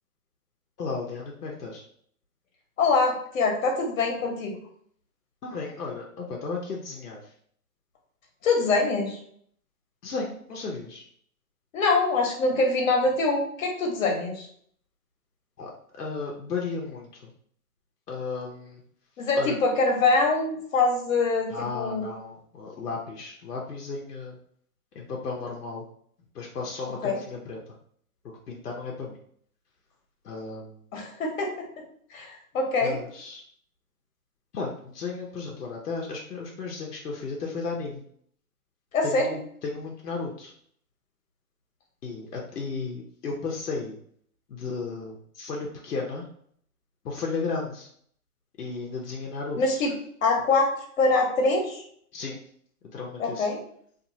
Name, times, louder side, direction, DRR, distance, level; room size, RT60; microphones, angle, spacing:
voice 1, 0.8-1.8 5.4-7.3 10.0-11.0 15.6-17.3 18.1-18.8 19.3-19.6 21.5-24.4 24.9-25.8 26.3-27.8 28.5-29.2 30.2-30.8 32.8-33.4 34.5-38.0 39.0-40.5 42.0-44.0 44.5-46.3 47.0-47.9 48.6-49.8 52.1-52.4 52.9-53.5, left 4 dB, 85° left, -2 dB, 0.8 m, -34 dB
voice 2, 2.8-4.5 8.4-9.2 11.7-14.5 19.2-22.0 27.0-27.2 30.9-31.6 32.1-33.0 38.9-39.4 49.6-49.9 50.2-51.8 53.2-53.6, left 3 dB, 60° left, 1 dB, 1.0 m, -24 dB
2.7 x 2.6 x 2.6 m, 0.64 s
hypercardioid pair, 125°, 46 cm